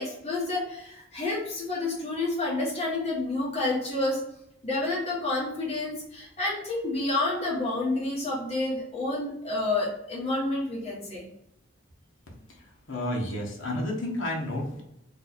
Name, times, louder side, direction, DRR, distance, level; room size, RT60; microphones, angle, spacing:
voice 1, 0.0-4.2 4.6-11.2, left 2 dB, 30° left, -5 dB, 1.1 m, -29 dB
voice 2, 12.3-14.8, left 1 dB, 75° left, -1 dB, 0.9 m, -32 dB
2.7 x 2.3 x 4.1 m, 0.81 s
head